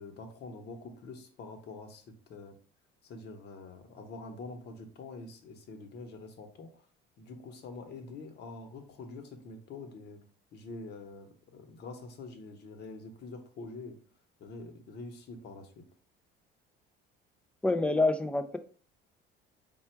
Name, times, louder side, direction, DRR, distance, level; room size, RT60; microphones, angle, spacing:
voice 1, 0.0-2.6 3.0-6.9 7.2-10.2 10.5-14.0 14.4-15.8, left 3 dB, 55° left, 5 dB, 1.0 m, -45 dB
voice 2, 17.6-18.6, left 2 dB, 5° left, 9 dB, 0.3 m, -27 dB
4.3 x 2.3 x 4.4 m, 0.42 s
cardioid pair, 120°, 21 cm